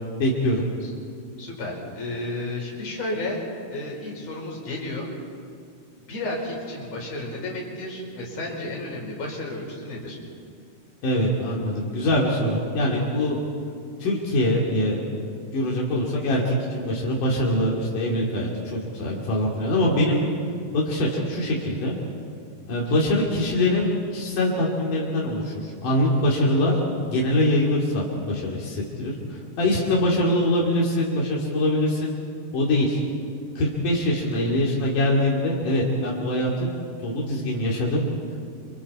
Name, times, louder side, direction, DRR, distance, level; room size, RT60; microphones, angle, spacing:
voice 1, 0.2-0.6 11.0-13.4 14.0-15.0 15.5-20.3 20.7-21.9 22.7-32.1 32.5-33.0 33.6-36.7 37.0-38.0, left 1 dB, 85° left, -4 dB, 4.4 m, -23 dB
voice 2, 1.4-3.4 3.7-5.1 6.1-10.2, left 2 dB, 55° left, -2 dB, 5.8 m, -32 dB
29.0 x 27.0 x 4.4 m, 2.2 s
omnidirectional pair, 3.6 m